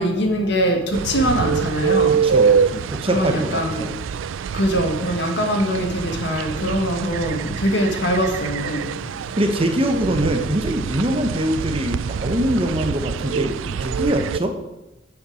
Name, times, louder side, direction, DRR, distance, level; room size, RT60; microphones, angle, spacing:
voice 1, 0.0-2.2 3.1-3.9 4.5-8.9, equal, 60° left, 4 dB, 1.7 m, -22 dB
sound 1, 0.9-14.4, right 6 dB, 80° right, 0.4 m, -25 dB
voice 2, 2.1-4.0 9.2-14.6, equal, 30° right, 6 dB, 1.0 m, -23 dB
8.7 x 7.0 x 6.2 m, 0.96 s
head